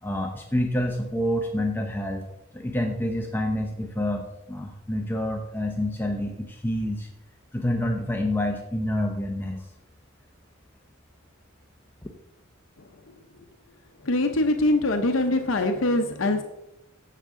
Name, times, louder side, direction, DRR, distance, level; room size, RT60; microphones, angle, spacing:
voice 1, 0.0-2.3 2.5-7.1 7.5-9.7 12.0-12.1, left 1 dB, 10° left, 2 dB, 0.7 m, -28 dB
voice 2, 14.0-16.4, left 2 dB, 70° left, 5 dB, 0.8 m, -23 dB
14.5 x 6.4 x 3.7 m, 0.91 s
head